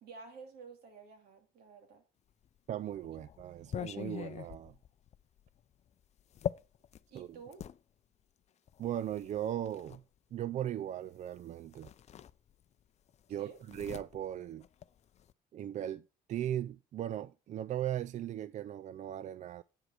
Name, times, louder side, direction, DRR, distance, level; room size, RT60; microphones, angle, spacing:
voice 1, 0.0-2.0 7.1-7.7 13.4-13.6, right 5 dB, 70° right, 2.7 m, -51 dB
sound 1, 2.4-7.8 8.7-10.0 11.3-11.4 11.7-12.8 13.1-15.3, left 10 dB, 40° left, 0.5 m, -43 dB
voice 2, 2.7-4.8 7.1-7.3 8.8-10.0 10.3-11.9 13.3-14.6 15.5-16.0 16.3-19.6, right 11 dB, 45° right, 0.4 m, -38 dB
8.8 x 4.8 x 6.5 m
cardioid pair, 110°, 17 cm